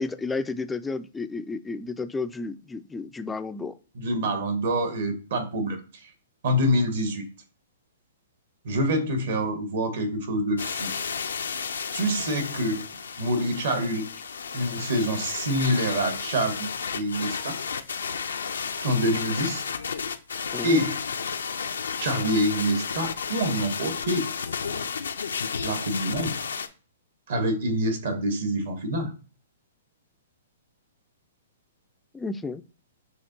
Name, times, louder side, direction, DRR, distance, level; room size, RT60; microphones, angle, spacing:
voice 1, 0.0-3.8 20.5-20.8 32.1-32.6, left 3 dB, 10° left, 0.3 m, -32 dB
voice 2, 3.9-5.8 6.4-7.2 8.6-10.9 11.9-12.8 13.2-14.1 14.5-16.7 16.9-17.6 18.8-19.6 20.6-21.0 22.0-24.3 25.6-26.3 27.3-29.1, equal, 65° right, 1.3 m, -26 dB
sound 1, 10.6-26.7, left 6 dB, 85° left, 0.5 m, -32 dB
6.5 x 2.9 x 2.7 m
hypercardioid pair, 130°, 0 cm